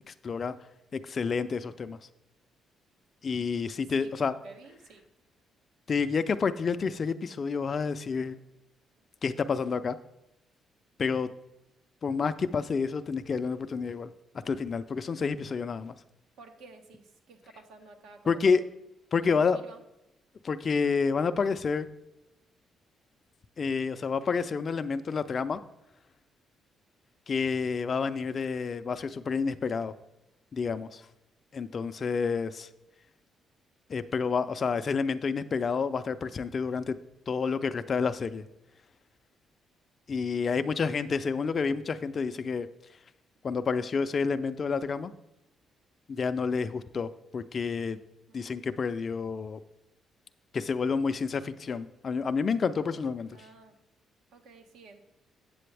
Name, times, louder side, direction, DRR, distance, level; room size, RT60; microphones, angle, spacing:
voice 1, 0.1-0.6 0.9-2.0 3.2-4.3 5.9-8.4 9.2-10.0 11.0-11.3 12.0-14.1 14.4-15.9 18.3-18.6 19.1-19.6 20.4-21.9 23.6-25.6 27.3-29.9 30.5-31.1 31.5-32.7 33.9-36.9 37.3-38.4 40.1-42.7 43.4-45.1 46.1-48.0 48.3-49.6 50.5-53.3, left 5 dB, 45° left, 10 dB, 0.4 m, -29 dB
voice 2, 4.0-5.0 16.4-18.7 19.2-19.8 31.7-32.3 40.6-40.7 48.3-48.4 53.3-53.7 54.3-55.0, right 3 dB, 85° right, 5 dB, 1.0 m, -52 dB
7.7 x 7.5 x 3.3 m, 0.93 s
cardioid pair, 90°, 0 cm